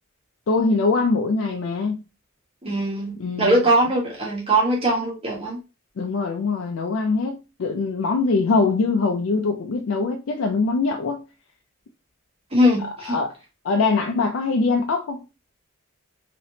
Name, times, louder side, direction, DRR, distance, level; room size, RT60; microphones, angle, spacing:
voice 1, 0.5-2.0 3.2-3.6 6.0-11.2 12.8-13.4 13.6-15.2, left 3 dB, 70° left, 0.4 m, -23 dB
voice 2, 2.6-5.6 12.5-13.1, right 1 dB, 25° right, 1.1 m, -21 dB
3.2 x 2.9 x 2.7 m
head